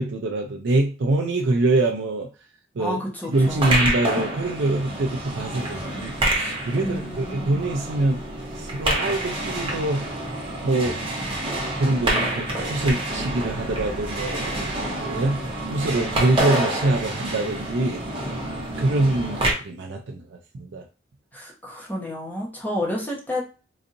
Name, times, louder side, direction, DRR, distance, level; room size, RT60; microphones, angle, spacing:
voice 1, 0.0-2.3 2.8-3.0 3.3-8.2 8.6-10.1 10.6-11.0 11.8-14.7 15.0-15.4 15.7-18.0 18.8-20.8, right 2 dB, 70° right, 1 dB, 0.5 m, -24 dB
voice 2, 2.8-3.8 6.8-7.5 21.3-23.4, left 1 dB, 10° left, -3 dB, 1.0 m, -30 dB
sound 1, 3.3-19.5, right 1 dB, 30° right, 1.0 m, -28 dB
3.9 x 2.7 x 2.6 m, 0.34 s
head